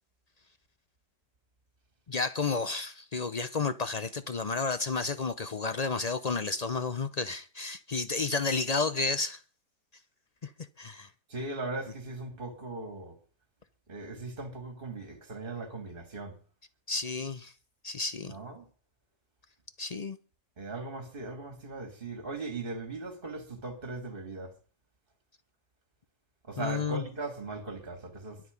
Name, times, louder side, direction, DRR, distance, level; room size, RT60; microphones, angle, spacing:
voice 1, 2.1-9.4 10.4-10.5 10.8-11.1 16.9-17.5 17.8-18.3 19.8-20.2 26.6-27.0, left 4 dB, 80° left, 0.3 m, -31 dB
voice 2, 11.3-13.2 13.9-16.4 18.3-18.7 20.6-24.6 26.4-28.4, right 3 dB, 30° right, 2.7 m, -39 dB
23.0 x 7.8 x 5.3 m
omnidirectional pair, 1.8 m